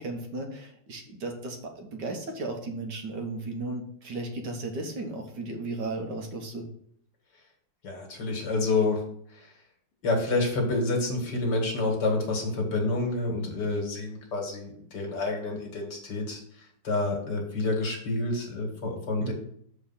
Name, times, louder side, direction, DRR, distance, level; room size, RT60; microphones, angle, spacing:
voice 1, 0.0-6.6 19.2-19.3, right 2 dB, 70° right, 3 dB, 1.7 m, -35 dB
voice 2, 7.8-9.0 10.0-16.4 16.8-19.3, left 3 dB, 70° left, 2 dB, 2.3 m, -28 dB
6.7 x 4.7 x 5.7 m, 0.65 s
omnidirectional pair, 2.0 m